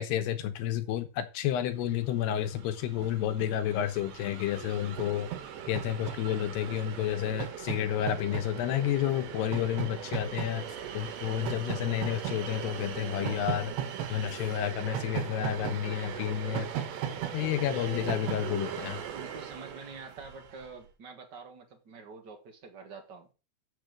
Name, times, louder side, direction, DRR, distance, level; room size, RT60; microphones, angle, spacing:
voice 1, 0.0-5.3 5.7-10.6 10.9-13.7 14.1-16.7 17.3-19.0, left 11 dB, 80° left, 3.1 m, -30 dB
Train, 2.0-2.1 2.3-20.7, right 9 dB, 90° right, 3.4 m, -38 dB
voice 2, 17.6-18.2 19.1-23.3, right 3 dB, 70° right, 1.0 m, -45 dB
7.4 x 7.0 x 6.0 m
omnidirectional pair, 4.8 m